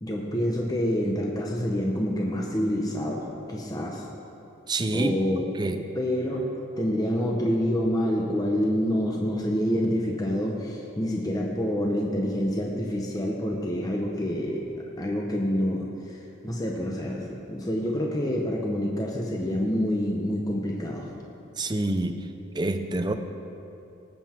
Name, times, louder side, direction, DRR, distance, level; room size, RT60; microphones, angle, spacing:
voice 1, 0.0-4.0 4.9-5.5 6.0-6.5 6.8-21.1, equal, 20° left, -1 dB, 0.9 m, -27 dB
voice 2, 4.7-5.2 5.5-5.8 21.6-22.3 22.5-23.1, right 2 dB, 20° right, 6 dB, 0.6 m, -27 dB
18.5 x 8.0 x 4.5 m, 2.8 s
head